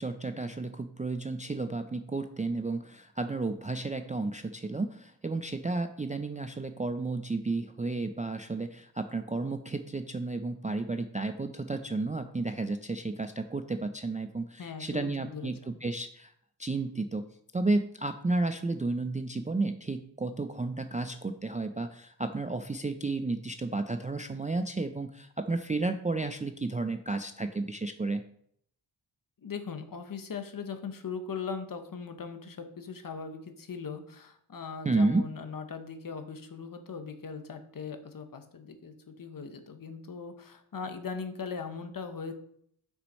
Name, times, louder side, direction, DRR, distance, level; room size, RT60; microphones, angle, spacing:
voice 1, 0.0-16.3 16.6-28.2 34.8-35.3, right 3 dB, 20° right, 7 dB, 0.3 m, -32 dB
voice 2, 14.6-15.8 29.4-42.3, left 5 dB, 50° left, 7 dB, 0.9 m, -39 dB
6.3 x 6.3 x 4.1 m, 0.67 s
wide cardioid pair, 145°, 44 cm